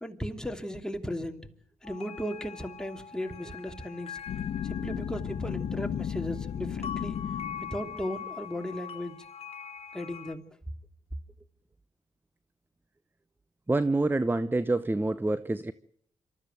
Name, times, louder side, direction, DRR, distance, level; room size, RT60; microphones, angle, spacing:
voice 1, 0.0-1.5 1.8-4.2 4.6-7.2 7.6-9.2 9.9-10.4, equal, 5° left, 2.8 m, -36 dB
sound 1, 1.8-10.3, left 8 dB, 45° left, 1.6 m, -43 dB
sound 2, 4.3-8.0, left 8 dB, 65° left, 1.2 m, -34 dB
voice 2, 13.7-15.7, right 2 dB, 15° right, 0.8 m, -27 dB
26.5 x 13.5 x 9.3 m
hypercardioid pair, 45°, 14 cm